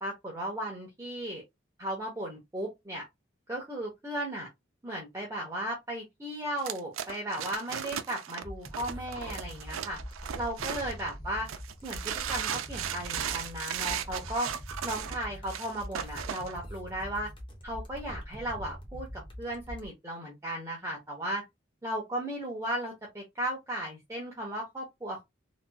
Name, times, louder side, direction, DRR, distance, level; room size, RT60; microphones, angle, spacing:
voice 1, 0.0-1.4 1.8-3.0 3.5-4.5 4.8-10.0 10.4-11.5 11.8-14.5 14.8-17.3 17.6-21.4 21.8-25.2, right 1 dB, 15° right, 0.8 m, -36 dB
sound 1, 6.6-11.1 11.5-16.5, right 8 dB, 85° right, 0.4 m, -36 dB
sound 2, 8.4-19.9, equal, 25° left, 0.8 m, -43 dB
3.3 x 3.0 x 2.2 m
head